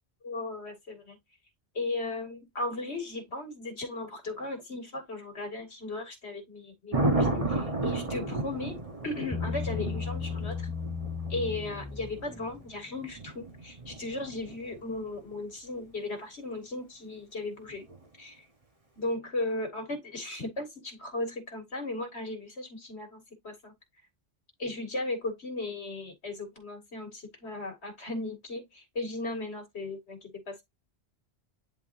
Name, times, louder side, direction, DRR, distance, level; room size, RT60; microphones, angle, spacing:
voice 1, 0.2-1.2 1.7-8.8 9.0-10.7 11.3-17.9 18.2-18.4 19.0-23.7 24.6-30.6, left 2 dB, 85° left, 2.5 m, -36 dB
Thunder, 6.9-15.0 17.7-18.0, right 2 dB, 35° right, 1.1 m, -33 dB
Bass guitar, 9.3-12.7, left 5 dB, 15° left, 0.5 m, -35 dB
10.5 x 3.5 x 2.6 m
omnidirectional pair, 1.1 m